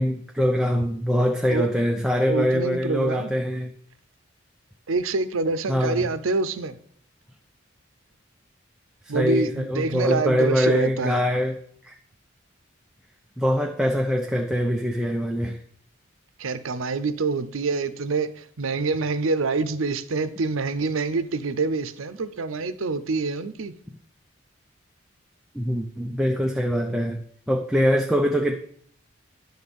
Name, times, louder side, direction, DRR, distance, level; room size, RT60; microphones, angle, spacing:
voice 1, 0.0-3.7 5.7-6.1 9.1-12.0 13.4-15.6 25.5-27.2 27.5-28.6, equal, 5° right, 0.5 m, -23 dB
voice 2, 2.3-3.3 4.9-6.8 9.1-11.2 16.4-23.7, right 3 dB, 85° right, 0.7 m, -26 dB
11.0 x 3.9 x 7.0 m
head